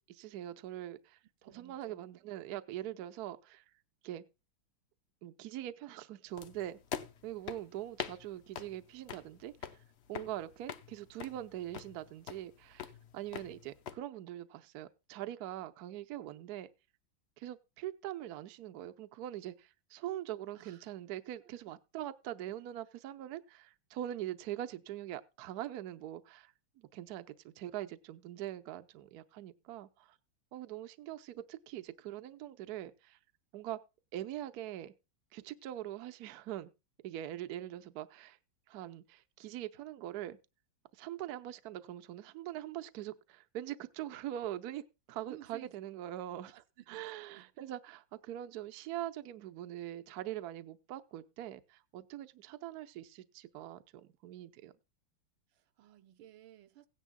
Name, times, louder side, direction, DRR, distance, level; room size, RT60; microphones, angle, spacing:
voice 1, 0.0-3.6 4.0-4.2 5.2-6.8 7.2-9.8 10.1-16.7 17.4-30.2 30.5-33.2 33.5-33.8 34.1-34.9 35.3-36.7 37.0-38.4 38.7-40.4 40.9-46.6 46.9-54.7, right 13 dB, 60° right, 1.1 m, -43 dB
voice 2, 1.4-2.1 20.5-20.9 21.4-21.5 45.3-45.8 46.4-47.5 55.5-56.9, right 13 dB, 80° right, 1.6 m, -56 dB
sound 1, 6.4-14.0, left 8 dB, 80° left, 0.6 m, -45 dB
17.0 x 10.0 x 2.2 m
omnidirectional pair, 2.2 m